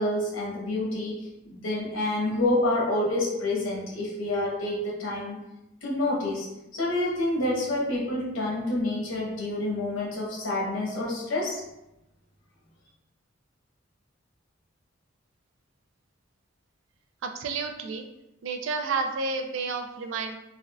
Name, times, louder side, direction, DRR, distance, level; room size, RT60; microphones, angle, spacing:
voice 1, 0.0-5.4 5.8-11.6, left 1 dB, 80° left, -4 dB, 0.9 m, -28 dB
voice 2, 17.2-18.1 18.4-20.3, right 4 dB, 65° right, 4 dB, 0.4 m, -30 dB
3.5 x 2.2 x 2.3 m, 0.90 s
head